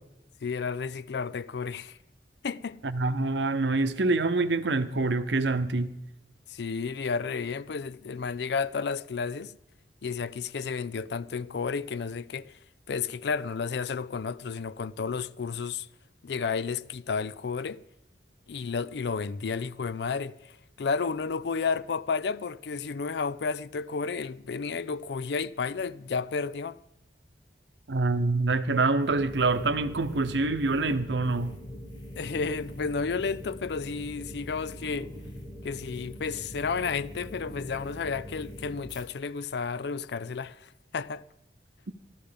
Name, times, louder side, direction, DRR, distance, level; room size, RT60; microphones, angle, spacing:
voice 1, 0.4-2.0 2.4-2.8 6.5-9.6 10.0-12.6 12.9-15.9 16.2-17.8 18.5-26.8 32.2-35.1 35.6-41.2, left 5 dB, 65° left, 0.5 m, -32 dB
voice 2, 2.8-5.9 27.9-31.5, right 3 dB, 85° right, 0.8 m, -26 dB
sound 1, 29.0-39.0, equal, 25° left, 2.2 m, -43 dB
13.5 x 13.0 x 5.2 m
head